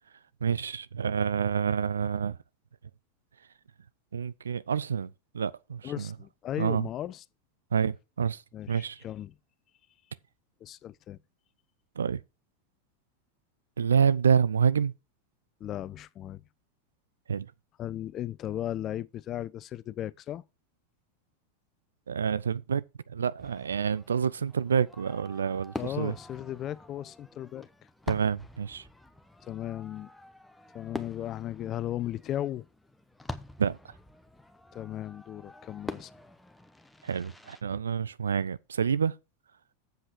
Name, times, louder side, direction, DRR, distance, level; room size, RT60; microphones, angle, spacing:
voice 1, 0.4-2.4 4.1-6.1 6.6-6.9 7.7-8.4 8.7-9.0 12.0-12.2 13.8-14.9 17.3-17.5 22.1-26.1 28.1-28.8 33.6-33.8 37.0-39.1, right 7 dB, 70° right, 0.5 m, -28 dB
voice 2, 5.8-7.2 8.5-9.3 10.6-11.2 15.6-16.4 17.8-20.4 25.8-27.7 29.4-30.1 30.7-32.7 34.7-36.1, left 12 dB, 35° left, 0.4 m, -36 dB
Fireworks, 23.4-37.6, left 1 dB, 5° left, 0.9 m, -45 dB
7.9 x 7.7 x 4.5 m
figure-of-eight pair, 85°, 0 cm